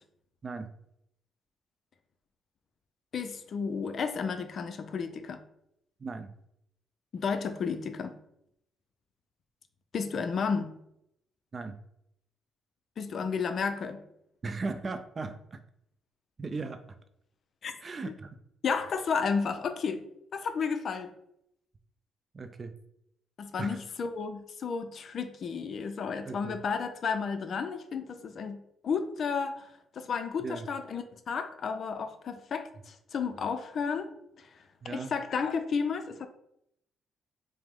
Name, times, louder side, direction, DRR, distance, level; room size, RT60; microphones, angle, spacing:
voice 1, 3.1-5.4 7.1-8.1 9.9-10.8 13.0-14.0 17.6-17.7 18.6-20.0 20.3-21.1 23.4-29.7 30.0-34.1 34.9-36.3, left 5 dB, 55° left, 8 dB, 0.4 m, -32 dB
voice 2, 6.0-6.3 11.5-11.8 14.4-15.6 16.4-16.8 17.8-18.4 22.3-22.7 23.6-23.8 26.3-26.6 30.4-30.7 34.8-35.1, right 3 dB, 35° right, 9 dB, 0.4 m, -37 dB
4.8 x 2.0 x 3.6 m, 0.76 s
cardioid pair, 90°, 0 cm